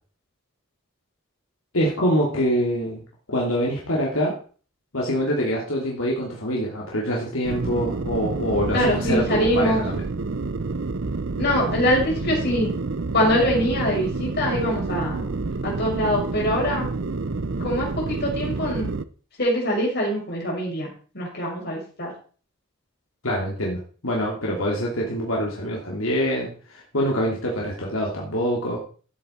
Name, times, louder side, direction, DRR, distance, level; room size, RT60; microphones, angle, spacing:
voice 1, 1.7-3.0 3.3-4.4 4.9-10.0 23.2-28.8, equal, 85° left, -3 dB, 3.0 m, -25 dB
sound 1, 7.4-19.1, right 3 dB, 60° right, 0.7 m, -28 dB
voice 2, 8.7-9.8 11.4-12.7 13.1-15.3 15.6-16.9 17.6-18.9 19.4-20.9 21.1-22.1, equal, 55° left, -2 dB, 6.0 m, -23 dB
13.5 x 8.4 x 4.4 m, 0.40 s
head